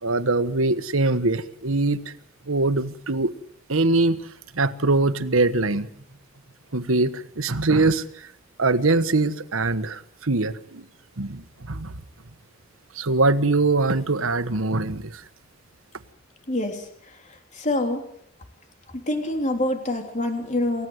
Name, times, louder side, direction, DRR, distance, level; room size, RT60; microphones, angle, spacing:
voice 1, 0.0-2.1 2.5-3.3 3.7-4.2 4.5-5.9 6.7-8.0 8.6-10.9 11.2-11.9 12.9-15.2, right 3 dB, 85° right, 11 dB, 1.4 m, -22 dB
voice 2, 16.5-16.8 17.5-18.0 19.1-20.9, left 1 dB, 35° left, 5 dB, 3.2 m, -25 dB
28.5 x 16.0 x 8.0 m, 0.68 s
head